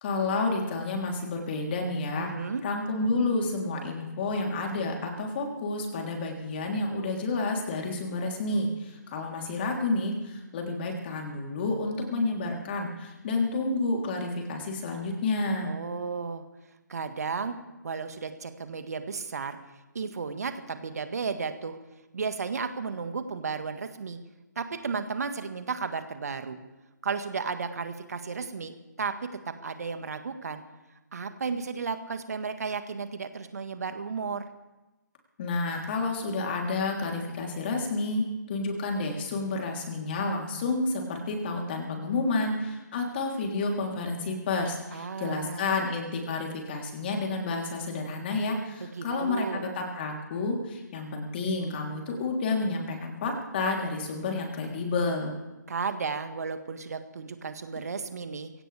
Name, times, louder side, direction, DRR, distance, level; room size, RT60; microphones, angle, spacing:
voice 1, 0.0-2.3 2.6-15.7 35.4-55.3, left 3 dB, 35° left, 1 dB, 3.4 m, -30 dB
voice 2, 2.2-2.6 15.6-16.4 16.9-17.6 17.8-19.6 20.0-21.8 22.1-24.2 24.6-26.6 27.0-29.1 29.5-30.6 31.1-34.5 44.9-45.7 48.8-49.6 55.7-58.5, right 5 dB, 55° right, 8 dB, 1.7 m, -33 dB
24.0 x 17.0 x 3.5 m, 1.1 s
figure-of-eight pair, 145°, 10 cm